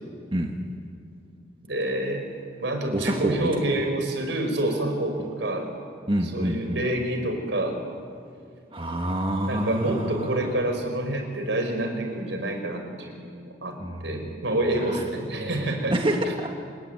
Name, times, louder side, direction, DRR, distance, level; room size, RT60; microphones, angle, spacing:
voice 1, 1.7-2.3 2.6-5.7 6.2-7.8 9.4-16.0, right 1 dB, 75° right, 5 dB, 5.2 m, -28 dB
voice 2, 2.9-3.5 6.1-6.8 8.7-10.5 13.8-14.0 14.9-15.0 15.4-15.5 15.9-16.5, right 1 dB, 25° right, 2 dB, 1.7 m, -27 dB
29.0 x 21.0 x 9.6 m, 2.3 s
head